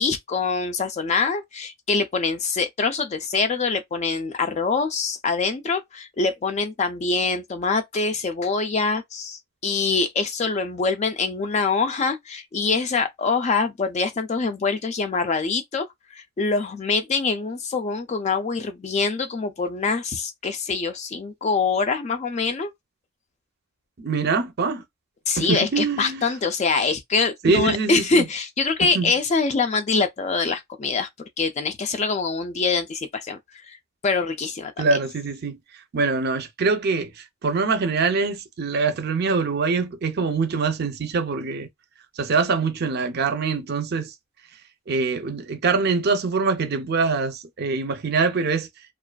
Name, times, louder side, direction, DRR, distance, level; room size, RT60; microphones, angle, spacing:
voice 1, 0.0-15.9 16.1-22.7 25.3-31.1 31.4-33.4 33.7-33.8 34.0-34.9, left 4 dB, 30° left, 0.3 m, -24 dB
voice 2, 24.0-24.8 25.4-26.3 27.4-28.3 28.8-29.1 34.8-41.7 42.2-44.1 44.9-48.7, right 4 dB, 45° right, 0.5 m, -24 dB
2.4 x 2.4 x 2.2 m
head